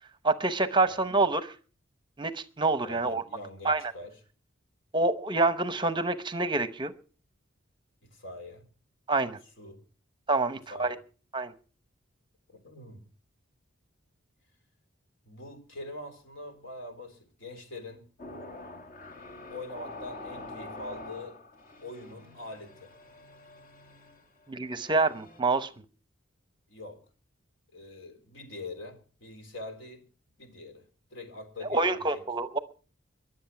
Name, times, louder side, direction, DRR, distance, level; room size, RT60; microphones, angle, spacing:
voice 1, 0.2-1.5 2.2-3.2 3.6-3.8 4.9-6.9 9.1-9.4 10.3-11.0 11.3-11.5 24.5-25.7 31.7-32.6, right 3 dB, 25° right, 12 dB, 0.8 m, -27 dB
voice 2, 2.8-4.2 8.0-8.6 9.6-9.8 10.7-11.0 12.5-13.1 15.3-18.0 19.5-21.4 21.8-22.9 26.7-27.0 27.7-30.0 30.4-30.8 31.1-32.2, left 2 dB, 65° left, 6 dB, 3.8 m, -43 dB
sound 1, 18.2-25.4, left 2 dB, 45° left, 2.1 m, -46 dB
22.5 x 7.9 x 5.8 m, 0.39 s
head